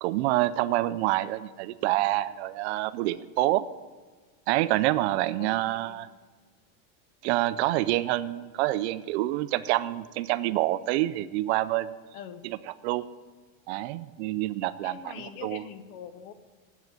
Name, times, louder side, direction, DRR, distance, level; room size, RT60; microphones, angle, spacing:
voice 1, 0.0-3.7 4.5-6.1 7.2-12.0 12.4-12.6 12.8-13.0 13.7-15.1 15.4-15.6, right 16 dB, 55° right, 14 dB, 0.5 m, -27 dB
voice 2, 5.4-6.0 12.1-12.4 14.8-16.3, left 8 dB, 40° left, 12 dB, 0.8 m, -43 dB
9.6 x 8.1 x 7.7 m, 1.5 s
supercardioid pair, 160°, 41 cm